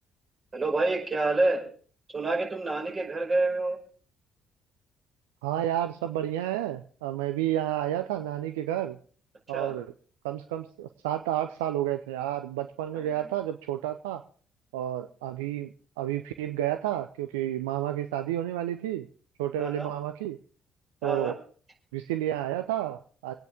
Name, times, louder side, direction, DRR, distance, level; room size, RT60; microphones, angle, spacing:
voice 1, 0.5-1.6 2.1-3.8 9.5-9.7 12.9-13.3 19.6-19.9 21.0-21.3, right 2 dB, 30° right, -1 dB, 5.4 m, -28 dB
voice 2, 5.4-9.0 9.5-9.9 10.2-14.2 14.7-19.1 19.4-20.4 21.0-21.4 21.9-23.3, right 12 dB, 75° right, 8 dB, 0.6 m, -30 dB
24.5 x 9.2 x 3.6 m, 0.43 s
figure-of-eight pair, 45°, 0 cm